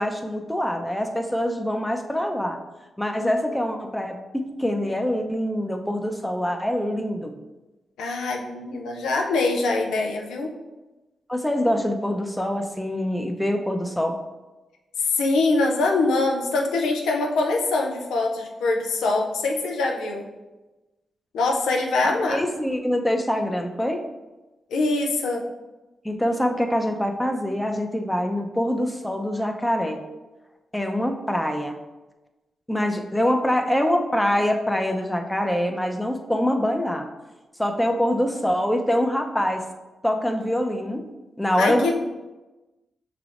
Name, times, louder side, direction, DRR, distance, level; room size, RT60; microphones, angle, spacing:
voice 1, 0.0-2.6 3.0-7.3 11.3-14.1 22.0-24.0 26.0-30.0 30.7-31.8 32.7-37.1 37.6-39.6 40.0-41.1 41.4-41.9, equal, 10° left, 4 dB, 0.6 m, -24 dB
voice 2, 8.0-10.5 15.0-20.2 21.3-22.4 24.7-25.4 41.5-41.9, left 3 dB, 90° left, 1 dB, 0.5 m, -23 dB
5.7 x 3.3 x 2.5 m, 1.1 s
supercardioid pair, 50°, 0 cm